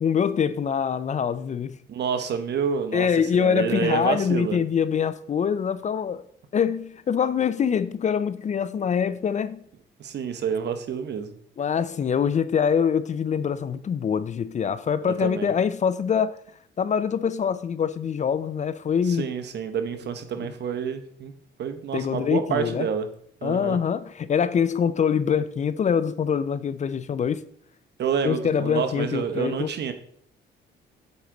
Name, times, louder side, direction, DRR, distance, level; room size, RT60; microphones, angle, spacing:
voice 1, 0.0-1.8 2.9-6.2 6.5-9.6 11.6-16.4 16.8-19.3 20.4-20.5 21.9-22.9 23.4-27.4 28.2-29.7, left 7 dB, 35° left, 0.4 m, -24 dB
voice 2, 1.9-3.1 3.3-4.6 10.0-11.3 15.1-15.5 19.1-21.3 21.6-23.1 23.4-23.8 28.0-29.9, right 7 dB, 60° right, 1.0 m, -28 dB
8.3 x 4.6 x 3.8 m
cardioid pair, 90°, 20 cm